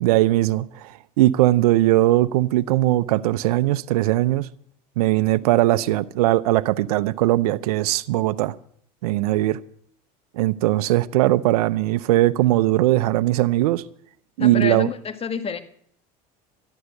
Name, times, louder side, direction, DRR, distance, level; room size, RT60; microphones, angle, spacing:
voice 1, 0.0-4.5 5.0-8.6 9.0-9.6 10.3-13.8 14.4-14.9, right 16 dB, 85° right, 0.6 m, -20 dB
voice 2, 14.4-15.6, left 6 dB, 30° left, 1.8 m, -28 dB
11.5 x 11.5 x 7.9 m
supercardioid pair, 90°, 19 cm